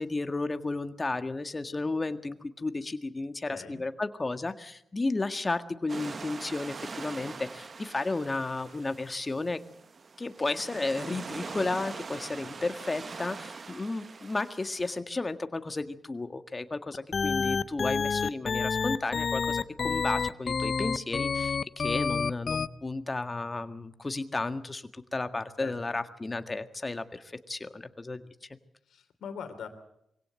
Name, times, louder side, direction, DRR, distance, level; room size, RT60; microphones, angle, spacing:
voice 1, 0.0-9.6 10.2-28.5, left 3 dB, 30° left, 9 dB, 1.7 m, -33 dB
voice 2, 3.4-3.8 25.6-26.0 28.9-29.7, left 6 dB, 80° left, 8 dB, 3.0 m, -42 dB
sound 1, 5.9-15.0, right 4 dB, 50° right, 0.9 m, -43 dB
sound 2, 16.9-22.7, left 5 dB, 55° left, 0.7 m, -28 dB
23.0 x 17.0 x 8.2 m, 0.78 s
supercardioid pair, 55°, 0 cm